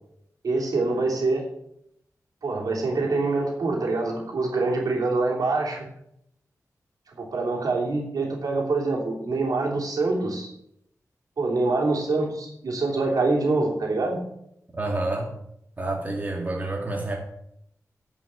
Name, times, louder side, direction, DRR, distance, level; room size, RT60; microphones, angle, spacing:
voice 1, 0.4-1.5 2.4-5.9 7.2-10.5 11.4-14.2, right 3 dB, 90° right, -1 dB, 3.0 m, -25 dB
voice 2, 14.7-15.3 15.8-17.2, right 2 dB, 25° right, 0 dB, 2.2 m, -28 dB
9.0 x 6.2 x 8.2 m, 0.76 s
wide cardioid pair, 135°, 6 cm